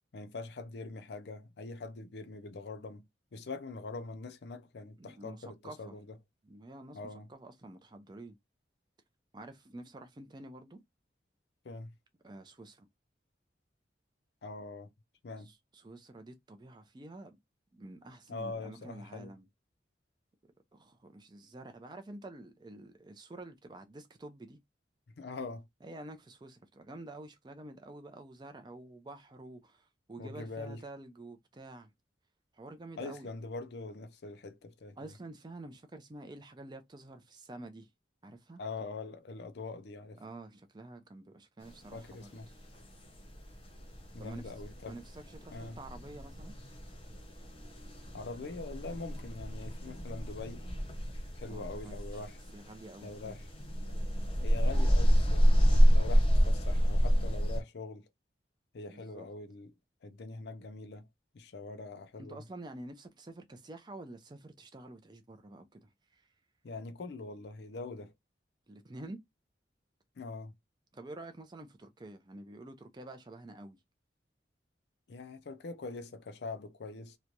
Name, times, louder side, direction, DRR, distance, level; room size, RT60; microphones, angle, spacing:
voice 1, 0.1-3.0 3.3-6.2 6.9-7.3 11.6-11.9 14.4-14.9 15.2-15.5 18.3-19.3 25.2-25.7 30.2-30.8 33.0-35.1 38.6-40.2 41.9-42.5 44.1-45.0 45.5-45.8 48.1-50.7 51.4-52.4 53.0-53.5 54.4-58.1 58.7-59.7 60.0-61.1 61.3-62.4 66.6-68.1 70.2-70.5 75.1-77.2, left 3 dB, 65° left, 0.5 m, -43 dB
voice 2, 5.0-6.0 6.4-7.0 7.3-8.4 9.3-10.8 12.2-12.9 15.4-17.4 17.7-19.5 20.7-24.6 25.8-31.9 32.5-33.3 35.0-37.9 38.2-38.6 40.2-42.5 44.2-44.5 44.9-46.6 51.5-52.0 52.5-53.4 58.9-59.3 62.2-66.3 68.7-69.2 70.9-73.8, right 2 dB, 25° right, 0.4 m, -48 dB
sound 1, 41.6-57.6, equal, 30° left, 0.8 m, -29 dB
3.0 x 2.1 x 2.5 m
head